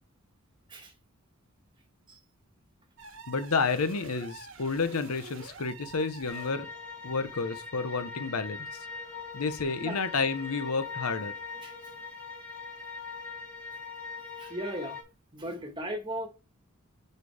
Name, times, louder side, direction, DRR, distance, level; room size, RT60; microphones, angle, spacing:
sound 1, 3.0-6.7, right 4 dB, 60° right, 1.1 m, -47 dB
voice 1, 3.3-6.7 7.0-8.8 9.3-11.3, left 4 dB, 85° left, 0.8 m, -30 dB
sound 2, 6.3-15.0, left 4 dB, 5° left, 3.3 m, -41 dB
voice 2, 14.4-15.0 15.3-16.3, right 1 dB, 20° right, 1.5 m, -36 dB
4.9 x 4.5 x 4.8 m
head